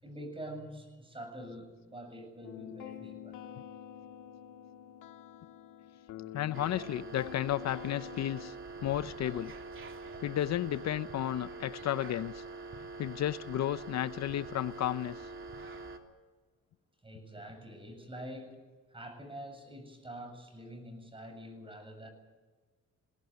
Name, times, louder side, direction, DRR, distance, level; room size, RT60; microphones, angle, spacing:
voice 1, 0.0-3.5 17.0-18.6 18.9-22.1, equal, 15° right, 6 dB, 7.5 m, -46 dB
sound 1, 2.4-8.5, left 11 dB, 90° left, 1.6 m, -47 dB
voice 2, 6.3-8.5 8.8-9.5 10.2-12.4 13.0-15.3, left 12 dB, 60° left, 15 dB, 0.7 m, -33 dB
sound 2, 6.5-16.0, right 3 dB, 45° right, 3.0 m, -45 dB
21.5 x 18.0 x 9.4 m, 1.3 s
cardioid pair, 90°, 30 cm